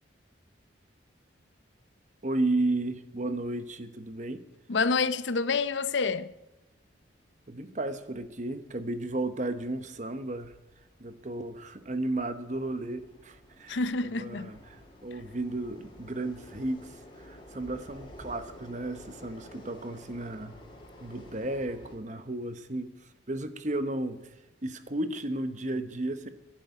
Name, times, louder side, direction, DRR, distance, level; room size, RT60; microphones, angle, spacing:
voice 1, 2.2-4.4 7.5-10.5 11.0-20.6 21.0-24.2 24.6-26.3, right 2 dB, 40° right, 1.0 m, -33 dB
voice 2, 4.7-6.3 13.7-14.5, left 4 dB, 70° left, 0.7 m, -28 dB
sound 1, 7.0-22.0, left 1 dB, 25° left, 3.2 m, -52 dB
12.0 x 11.0 x 9.7 m
head